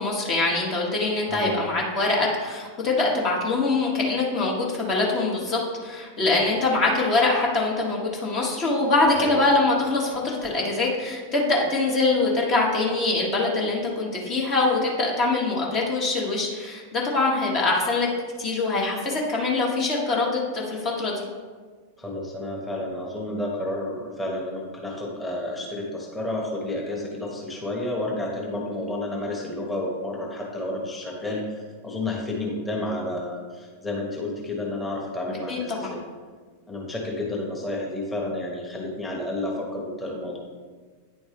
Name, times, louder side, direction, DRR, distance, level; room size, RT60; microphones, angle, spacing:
voice 1, 0.0-18.1 18.4-21.1 35.5-35.9, left 3 dB, 35° left, -2 dB, 1.3 m, -23 dB
voice 2, 1.3-1.6 9.2-9.4 22.0-36.0 36.7-40.4, left 1 dB, 10° left, -3 dB, 1.3 m, -31 dB
9.4 x 4.3 x 3.4 m, 1.5 s
figure-of-eight pair, 90°, 0 cm